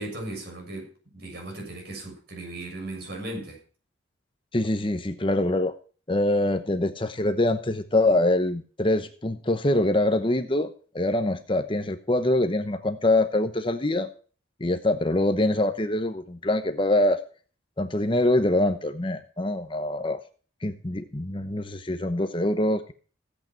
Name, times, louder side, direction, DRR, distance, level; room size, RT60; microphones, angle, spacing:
voice 1, 0.0-3.6, right 1 dB, 55° right, 6.8 m, -37 dB
voice 2, 4.5-5.7 6.1-10.7 10.9-14.1 14.6-17.2 17.8-20.2 20.6-22.9, left 1 dB, 25° left, 0.9 m, -24 dB
16.0 x 8.6 x 4.5 m
head